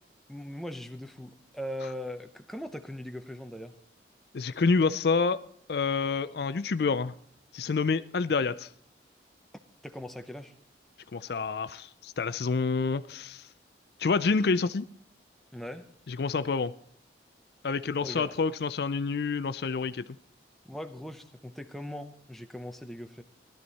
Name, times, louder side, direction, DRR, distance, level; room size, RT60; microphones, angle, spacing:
voice 1, 0.3-3.7 9.8-10.5 15.5-15.9 18.0-18.3 20.7-23.2, equal, ahead, 6 dB, 0.7 m, -40 dB
voice 2, 4.3-5.4 5.7-7.1 7.5-8.7 11.1-13.5 14.0-14.9 16.1-16.7 17.6-20.2, left 4 dB, 60° left, 14 dB, 0.4 m, -28 dB
16.0 x 12.0 x 4.2 m, 0.63 s
head